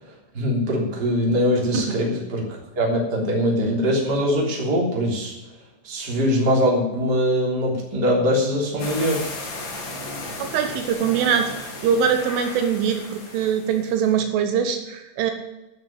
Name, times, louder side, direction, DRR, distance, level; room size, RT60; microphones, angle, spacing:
voice 1, 0.3-5.3 5.8-9.3, equal, 25° right, -2 dB, 3.1 m, -22 dB
sound 1, 8.8-14.0, left 2 dB, 45° left, 3.0 m, -35 dB
voice 2, 10.4-15.3, right 7 dB, 80° right, 6 dB, 3.5 m, -23 dB
13.0 x 6.5 x 8.9 m, 0.99 s
omnidirectional pair, 5.7 m